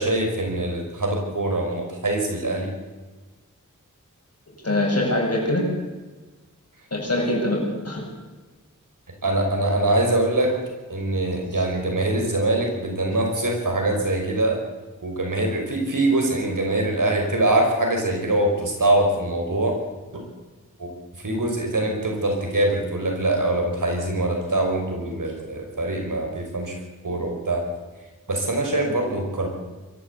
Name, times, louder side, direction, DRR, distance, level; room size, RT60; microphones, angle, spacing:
voice 1, 0.0-2.7 9.2-10.5 10.9-14.6 15.0-19.8 20.1-20.2 20.8-20.9 21.2-26.8 27.0-27.6 28.3-29.5, right 2 dB, 75° right, 2 dB, 5.6 m, -23 dB
voice 2, 4.6-5.7 6.9-8.1, left 1 dB, 50° left, 0 dB, 7.6 m, -23 dB
23.0 x 14.5 x 8.3 m, 1.3 s
wide cardioid pair, 70°, 32 cm